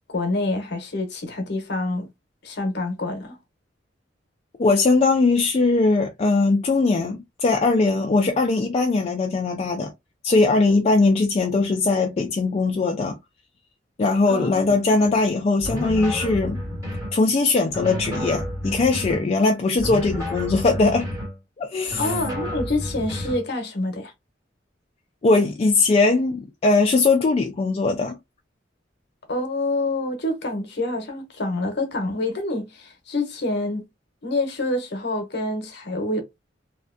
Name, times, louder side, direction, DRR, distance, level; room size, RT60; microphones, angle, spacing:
voice 1, 0.1-2.1 2.4-3.4 14.3-14.8 22.0-24.1 29.3-33.9 34.2-36.2, left 2 dB, 60° left, 0.8 m, -27 dB
voice 2, 4.6-9.9 10.2-13.2 14.0-16.6 17.1-21.1 21.6-22.1 25.2-28.2, left 3 dB, 35° left, 0.3 m, -20 dB
sound 1, 15.6-17.2 17.7-19.3 19.8-21.4 21.9-23.5, equal, 15° right, 1.1 m, -30 dB
2.5 x 2.2 x 2.4 m
head